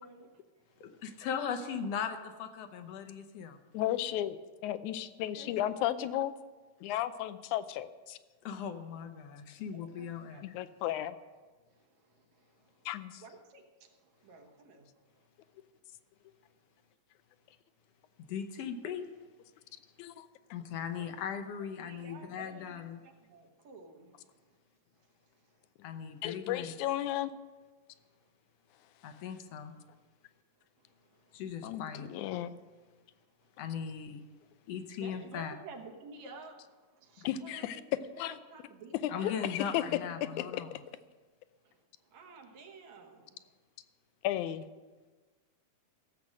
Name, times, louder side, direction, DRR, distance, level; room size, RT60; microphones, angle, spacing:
voice 1, 0.0-1.2 5.3-5.9 9.7-10.5 10.8-11.0 11.7-12.9 13.2-15.5 18.2-18.3 21.0-21.2 21.6-24.6 24.9-25.7 27.9-28.3 30.6-31.8 33.8-33.9 35.0-39.5 41.6-43.6, right 3 dB, 70° right, 2 dB, 2.6 m, -54 dB
voice 2, 0.8-3.6 8.4-10.4 18.3-19.1 20.5-23.0 25.8-26.7 29.0-29.7 31.3-32.1 33.6-34.2 34.7-35.5 39.1-40.7, left 7 dB, 70° left, 7 dB, 1.7 m, -38 dB
voice 3, 3.7-4.4 4.6-6.3 6.8-8.2 10.4-11.2 12.9-13.2 20.0-20.3 26.2-27.3 31.6-32.5 37.3-37.8 38.2-38.3 39.2-39.8 40.2-40.8 44.2-44.7, left 12 dB, 85° left, 13 dB, 2.1 m, -34 dB
16.5 x 7.7 x 6.3 m, 1.3 s
omnidirectional pair, 3.3 m